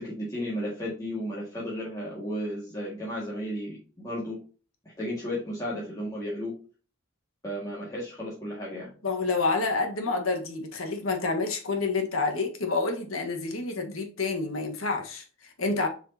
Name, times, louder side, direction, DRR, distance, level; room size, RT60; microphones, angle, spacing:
voice 1, 0.0-4.4 5.0-6.5 7.4-8.9, equal, 15° left, 1.9 m, -34 dB
voice 2, 9.0-15.9, left 3 dB, 85° left, 1.4 m, -28 dB
7.3 x 4.9 x 2.8 m
head